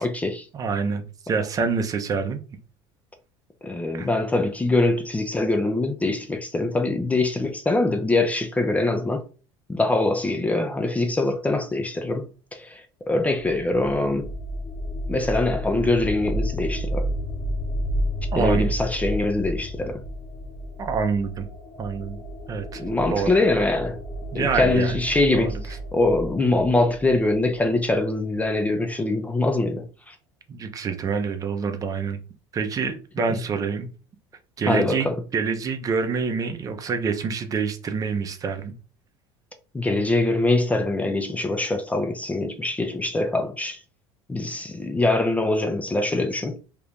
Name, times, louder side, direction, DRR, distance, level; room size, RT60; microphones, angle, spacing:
voice 1, 0.0-0.5 3.6-9.2 9.7-14.3 15.1-17.1 18.4-20.0 22.8-24.0 24.3-30.2 33.3-33.4 34.7-35.2 39.7-43.8 44.3-46.6, left 2 dB, 15° left, 0.4 m, -23 dB
voice 2, 0.5-2.4 3.9-4.1 18.3-18.6 20.8-21.5 21.8-22.2 22.5-22.8 23.1-23.3 24.3-24.9 25.3-25.5 30.5-32.2 32.5-33.9 34.6-38.7, right 5 dB, 30° right, 0.6 m, -26 dB
sound 1, 13.4-28.0, equal, 45° left, 1.1 m, -31 dB
2.9 x 2.5 x 3.4 m
supercardioid pair, 110°, 11 cm